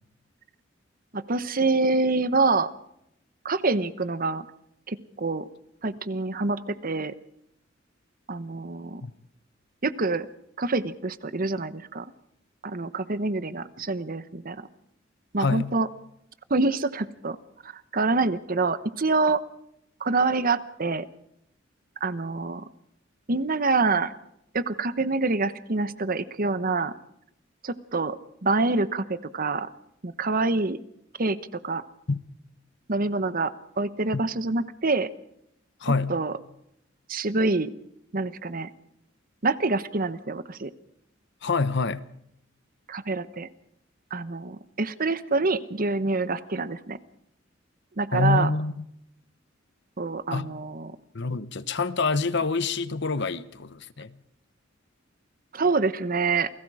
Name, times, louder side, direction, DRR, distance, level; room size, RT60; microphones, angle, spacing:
voice 1, 1.1-2.7 3.4-4.5 4.9-5.5 5.8-7.1 8.3-9.0 9.8-10.3 10.6-12.1 12.6-14.6 15.3-15.9 16.5-17.4 17.6-19.4 20.0-21.1 22.0-22.6 23.3-24.1 24.5-26.9 27.6-28.2 28.4-29.7 30.0-30.8 31.2-31.4 31.6-31.8 32.9-35.1 36.1-36.3 37.1-37.7 38.1-38.7 39.4-40.7 42.9-43.5 44.1-47.0 48.0-48.5 50.0-51.0 55.5-56.5, right 3 dB, 45° right, 1.0 m, -26 dB
voice 2, 15.4-15.8 32.1-32.2 34.1-34.2 35.8-36.2 41.4-42.1 48.1-48.8 50.3-50.6 51.1-54.2, left 4 dB, 60° left, 1.0 m, -26 dB
28.5 x 19.0 x 4.9 m
head